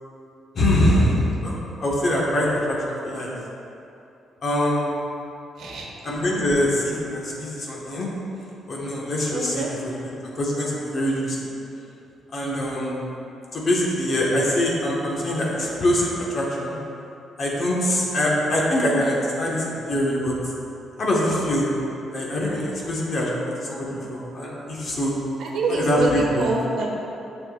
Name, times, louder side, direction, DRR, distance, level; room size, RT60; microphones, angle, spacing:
voice 1, 0.5-3.3 4.4-4.9 6.0-8.1 8.7-11.5 12.3-13.0 13.5-16.8 17.4-20.3 21.0-21.7 22.1-25.1 25.7-26.5, left 1 dB, 50° left, -4 dB, 1.6 m, -24 dB
voice 2, 5.6-5.9 9.3-9.7 25.4-26.9, right 2 dB, 75° right, -1 dB, 1.1 m, -25 dB
9.0 x 6.1 x 2.6 m, 2.8 s
cardioid pair, 90°, 0 cm